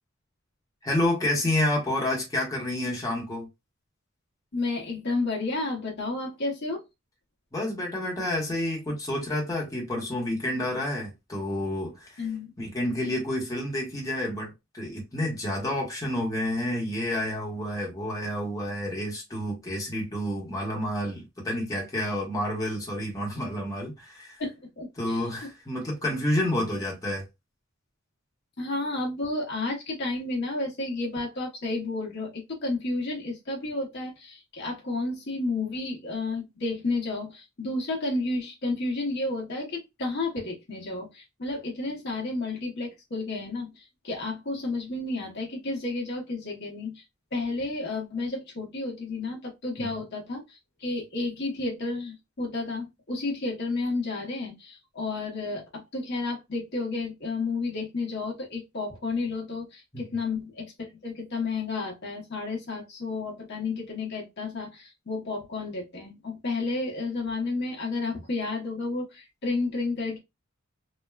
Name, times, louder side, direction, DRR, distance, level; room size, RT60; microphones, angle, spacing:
voice 1, 0.8-3.5 7.5-12.2 12.6-24.4 25.0-27.2 49.8-50.0 59.9-60.0, left 1 dB, 15° left, 0.9 m, -29 dB
voice 2, 4.5-6.9 12.2-12.5 24.4-24.5 24.8-25.2 28.6-47.0 47.3-70.2, left 3 dB, 55° left, 0.9 m, -31 dB
3.1 x 2.1 x 2.2 m
head